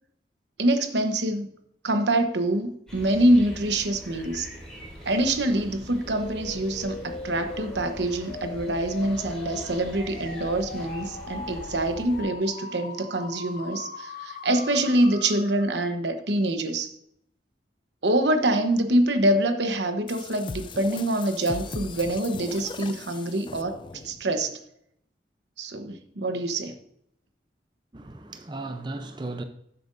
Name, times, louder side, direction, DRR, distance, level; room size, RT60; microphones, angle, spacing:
voice 1, 0.6-1.5 1.8-4.5 5.1-16.9 18.0-23.8 24.0-24.6 25.6-26.7, right 1 dB, 85° right, 1.1 m, -25 dB
sound 1, 2.9-12.2, equal, 5° left, 3.4 m, -42 dB
sound 2, 6.1-15.9, left 3 dB, 50° left, 0.8 m, -40 dB
sound 3, 20.1-24.2, left 3 dB, 25° left, 0.3 m, -39 dB
voice 2, 27.9-29.4, right 2 dB, 25° right, 0.6 m, -35 dB
13.0 x 7.7 x 2.6 m
head